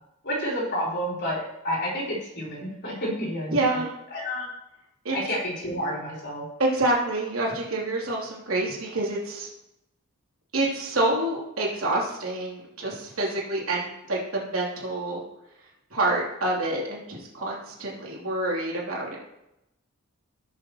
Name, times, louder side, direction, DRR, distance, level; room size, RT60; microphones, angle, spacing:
voice 1, 0.2-1.4 1.6-3.8 4.1-4.5 5.1-6.4, equal, 50° left, -5 dB, 4.1 m, -30 dB
voice 2, 3.5-3.9 5.0-5.1 6.6-9.5 10.5-15.2 15.9-19.2, right 2 dB, 70° right, -4 dB, 3.3 m, -27 dB
17.5 x 7.1 x 3.1 m, 0.88 s
head